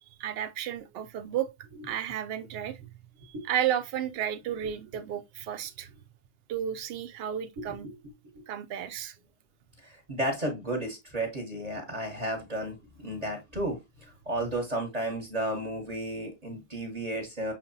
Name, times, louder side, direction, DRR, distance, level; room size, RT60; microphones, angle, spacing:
voice 1, 0.2-1.5 1.8-2.8 3.2-5.9 6.5-7.9 8.5-9.1, right 10 dB, 65° right, 0.7 m, -32 dB
voice 2, 7.6-7.9 8.3-8.4 9.8-17.5, right 1 dB, 35° right, 1.1 m, -33 dB
5.8 x 2.8 x 2.6 m
omnidirectional pair, 1.2 m